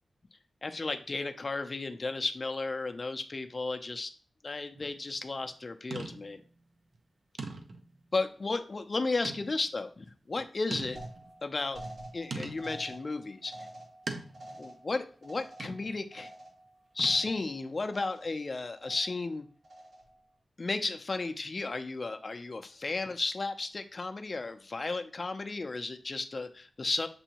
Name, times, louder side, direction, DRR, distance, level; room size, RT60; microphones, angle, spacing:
voice 1, 0.6-4.1 4.4-6.4 8.1-11.0 11.4-11.8 12.1-13.7 14.6-16.3 16.9-19.5 20.6-27.1, left 3 dB, 40° left, 7 dB, 0.5 m, -34 dB
sound 1, 4.8-5.0 5.9-6.5 6.9-7.0 7.4-8.0 9.2-9.6 10.1-10.2 10.7-11.3 12.3-12.8 14.1-14.6 15.6-16.0 17.0-17.5, right 3 dB, 65° right, 0.6 m, -41 dB
sound 2, 11.0-16.7 17.0-17.6 17.9-18.4 18.8-19.3 19.6-20.2, right 1 dB, 85° right, 2.5 m, -48 dB
6.8 x 2.7 x 2.9 m, 0.41 s
wide cardioid pair, 100°, 0 cm